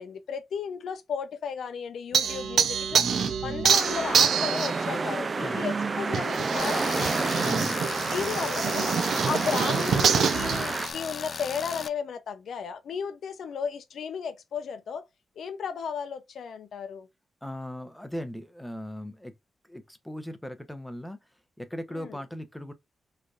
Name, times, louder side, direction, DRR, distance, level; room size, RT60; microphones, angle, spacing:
voice 1, 0.0-3.0 3.4-7.6 8.1-9.0 9.3-15.1 15.4-17.1 21.9-22.2, left 6 dB, 75° left, 0.6 m, -34 dB
sound 1, 2.1-4.9 6.1-10.9, right 7 dB, 75° right, 0.6 m, -26 dB
voice 2, 2.9-3.8 5.4-5.6 7.4-7.8 17.4-19.4 19.7-21.2 21.6-22.7, equal, 5° left, 0.7 m, -38 dB
sound 2, 3.7-10.9, right 4 dB, 35° right, 0.3 m, -30 dB
Tools, 6.6-11.9, left 5 dB, 45° left, 0.3 m, -37 dB
3.9 x 3.3 x 2.4 m
wide cardioid pair, 120°, 0 cm